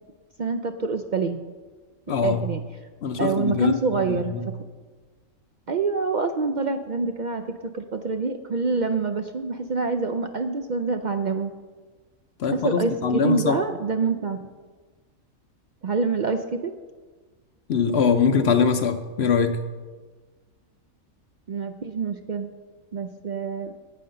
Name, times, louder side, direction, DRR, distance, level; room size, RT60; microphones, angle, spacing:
voice 1, 0.4-1.4 2.2-2.6 3.2-4.4 5.7-7.4 7.7-11.5 12.5-14.5 15.8-16.7 21.5-22.5 22.9-23.7, right 4 dB, 70° right, 7 dB, 0.4 m, -26 dB
voice 2, 2.1-2.4 3.0-3.7 4.1-4.4 12.4-13.6 17.7-19.6, left 6 dB, 60° left, 8 dB, 0.8 m, -22 dB
9.3 x 8.5 x 6.6 m, 1.4 s
omnidirectional pair, 1.5 m